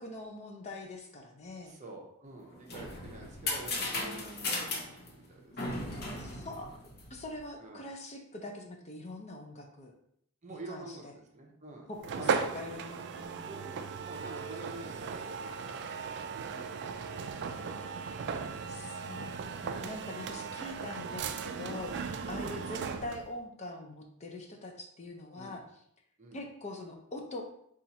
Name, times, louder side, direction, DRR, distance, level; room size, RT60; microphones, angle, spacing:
voice 1, 0.0-1.8 4.0-4.5 6.1-6.8 7.1-9.9 10.6-11.1 11.9-13.5 18.7-19.3 19.5-25.6 26.3-27.4, left 2 dB, 30° left, 2 dB, 0.5 m, -43 dB
voice 2, 1.6-4.8 5.1-5.7 7.6-7.8 10.4-11.9 12.2-12.4 13.5-17.7 19.0-19.3 20.3-20.8 21.8-22.1 25.4-25.6 26.2-26.4, right 2 dB, 35° right, 0 dB, 0.7 m, -48 dB
sound 1, 2.4-7.4, left 2 dB, 45° left, 0.8 m, -37 dB
sound 2, 12.0-23.3, right 6 dB, 50° right, 0.3 m, -37 dB
4.1 x 2.4 x 4.1 m, 0.71 s
head